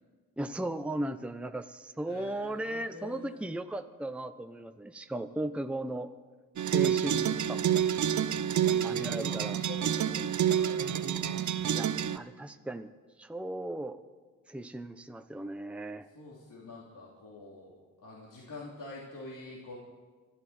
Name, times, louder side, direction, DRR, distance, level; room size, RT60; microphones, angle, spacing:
voice 1, 0.4-6.1 6.6-7.8 8.8-9.6 11.7-12.9 13.2-14.0 14.5-16.1, right 1 dB, 5° right, 7 dB, 0.9 m, -37 dB
voice 2, 2.1-3.5 8.4-11.4 16.1-19.8, left 2 dB, 60° left, -4 dB, 3.4 m, -47 dB
sound 1, 6.6-12.2, right 9 dB, 55° right, 0.8 m, -28 dB
24.5 x 13.0 x 4.4 m, 1.4 s
supercardioid pair, 55°, 35 cm